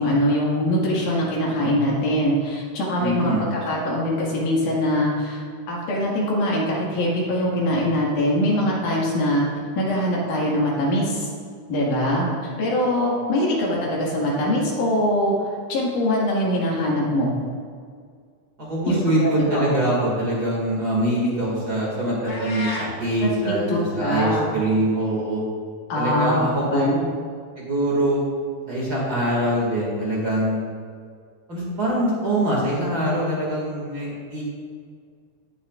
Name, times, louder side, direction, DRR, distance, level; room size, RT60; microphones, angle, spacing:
voice 1, 0.0-9.5 9.7-11.3 11.7-12.3 12.6-17.4 18.9-19.8 23.2-24.5 25.9-26.4 26.7-27.0, equal, 85° left, -4 dB, 3.4 m, -23 dB
voice 2, 3.0-3.4 18.6-25.4 25.9-26.9 27.6-28.2 28.7-30.6 31.5-34.4, right 1 dB, 35° right, -5 dB, 2.2 m, -23 dB
sound 1, 22.3-22.9, left 1 dB, 50° left, 2.3 m, -31 dB
17.0 x 7.2 x 2.4 m, 2.1 s
omnidirectional pair, 3.5 m